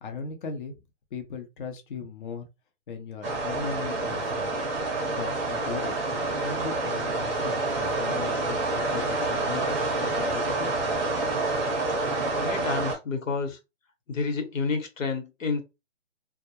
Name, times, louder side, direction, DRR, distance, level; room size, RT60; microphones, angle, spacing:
voice 1, 0.0-0.8 1.1-2.5 2.9-4.5 5.1-5.9 6.4-7.5 7.9-10.7, left 5 dB, 40° left, 0.5 m, -38 dB
sound 1, 3.2-13.0, right 2 dB, 15° right, 0.6 m, -28 dB
voice 2, 12.4-13.6 14.1-15.6, left 4 dB, 90° left, 1.1 m, -29 dB
2.3 x 2.0 x 2.8 m
hypercardioid pair, 155°, 38 cm